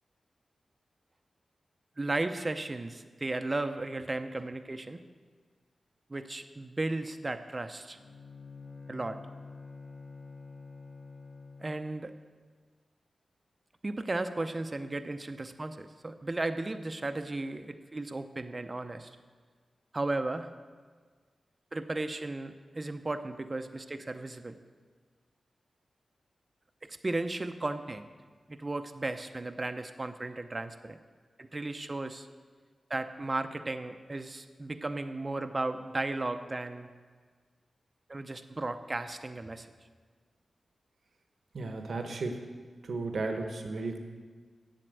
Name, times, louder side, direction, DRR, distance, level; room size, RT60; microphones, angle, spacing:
voice 1, 2.0-5.0 6.1-8.0 8.9-9.2 11.6-12.1 13.8-19.1 19.9-20.5 21.7-24.6 26.9-28.1 28.5-31.0 31.4-32.3 32.9-36.9 38.1-39.7, right 2 dB, 30° right, 8 dB, 0.5 m, -35 dB
Bowed string instrument, 7.9-12.0, left 4 dB, 70° left, 1.3 m, -48 dB
voice 2, 41.5-42.5 42.8-44.0, right 3 dB, 70° right, 5 dB, 0.9 m, -34 dB
7.6 x 7.2 x 7.9 m, 1.5 s
cardioid pair, 75°, 0 cm